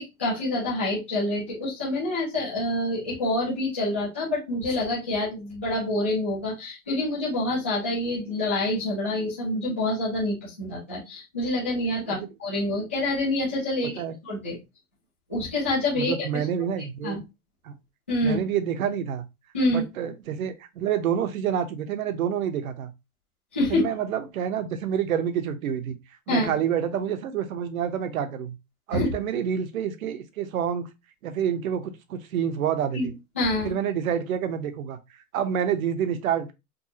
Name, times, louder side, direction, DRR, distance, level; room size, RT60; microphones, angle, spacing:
voice 1, 0.0-14.6 15.3-16.4 17.0-17.2 18.1-18.4 19.5-19.8 23.5-23.9 26.3-26.5 28.9-29.1 32.9-33.7, left 1 dB, 10° left, 0.3 m, -27 dB
voice 2, 16.0-17.2 17.6-17.8 18.2-19.2 19.7-22.9 23.7-26.0 26.3-28.6 28.9-30.9 31.2-33.1 33.6-35.0 35.3-36.5, right 8 dB, 70° right, 0.9 m, -28 dB
5.3 x 2.4 x 2.8 m
supercardioid pair, 165°, 44 cm